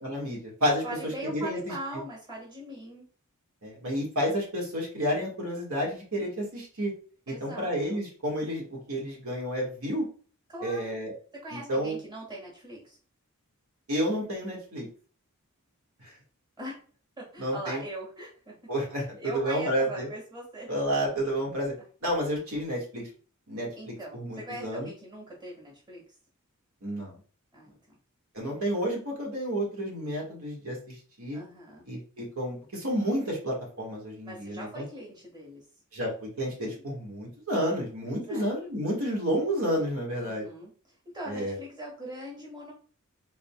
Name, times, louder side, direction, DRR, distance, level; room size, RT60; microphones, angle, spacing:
voice 1, 0.0-1.6 3.6-6.9 7.3-10.1 10.6-11.1 11.7-12.0 13.9-14.9 17.4-17.8 18.7-20.1 20.7-21.7 22.0-23.1 23.5-24.9 26.8-27.2 28.3-31.4 31.9-34.8 35.9-40.4 41.3-41.5, equal, 75° right, -3 dB, 1.8 m, -30 dB
voice 2, 0.8-3.1 7.3-8.0 10.5-11.0 11.3-13.0 16.6-16.8 17.2-18.5 19.2-20.7 23.8-26.0 27.5-27.7 31.3-31.8 34.2-35.6 38.1-38.5 40.1-40.7 41.1-42.7, right 1 dB, 20° right, -3 dB, 1.8 m, -41 dB
4.0 x 3.8 x 2.3 m, 0.40 s
head